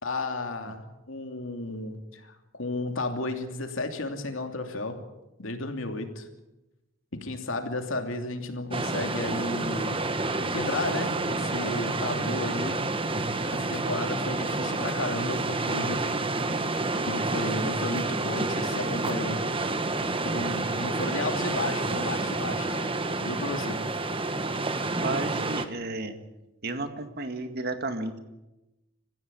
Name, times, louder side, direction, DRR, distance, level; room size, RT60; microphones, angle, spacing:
voice 1, 0.0-5.0 5.4-6.3 7.1-10.2 10.5-12.8 13.5-16.1 17.1-19.4 20.2-22.9 23.2-23.9, left 2 dB, 75° left, 5 dB, 2.8 m, -33 dB
sound 1, 8.7-25.7, right 2 dB, 25° right, 1.4 m, -29 dB
voice 2, 25.0-26.2 26.6-28.2, right 2 dB, 50° right, 8 dB, 2.0 m, -32 dB
25.5 x 15.0 x 8.6 m, 0.99 s
head